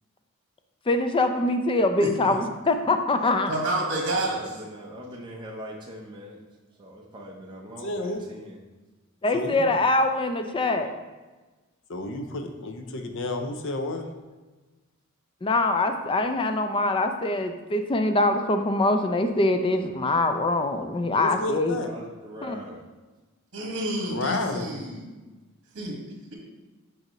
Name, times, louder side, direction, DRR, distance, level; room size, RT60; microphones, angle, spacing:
voice 1, 0.9-3.5 9.2-10.9 15.4-21.8 22.4-22.6, left 2 dB, 25° left, 7 dB, 0.4 m, -24 dB
voice 2, 2.0-2.3 3.5-4.6 23.5-25.1 25.7-26.0, right 1 dB, 60° right, -1 dB, 1.5 m, -29 dB
voice 3, 4.1-6.4 6.8-8.6 21.8-22.8, equal, 20° right, -2 dB, 0.7 m, -41 dB
voice 4, 7.8-8.4 9.3-9.7 11.9-14.1 21.1-21.9 24.1-24.7, left 2 dB, 65° left, 6 dB, 0.6 m, -31 dB
6.5 x 5.0 x 3.0 m, 1.2 s
head